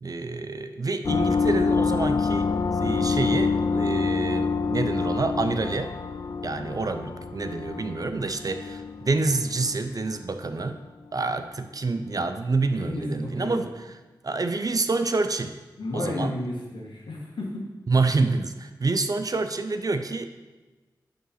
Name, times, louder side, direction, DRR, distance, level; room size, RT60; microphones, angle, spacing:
voice 1, 0.0-2.5 2.8-5.9 6.4-10.8 11.1-13.7 14.2-15.6 15.9-16.3 17.9-20.3, right 3 dB, 50° right, 9 dB, 0.5 m, -27 dB
sound 1, 1.0-10.2, left 4 dB, 55° left, 0.4 m, -27 dB
voice 2, 12.8-13.6 15.8-17.6, left 1 dB, 90° left, -2 dB, 1.5 m, -32 dB
5.6 x 5.1 x 5.7 m, 1.2 s
cardioid pair, 50°, 8 cm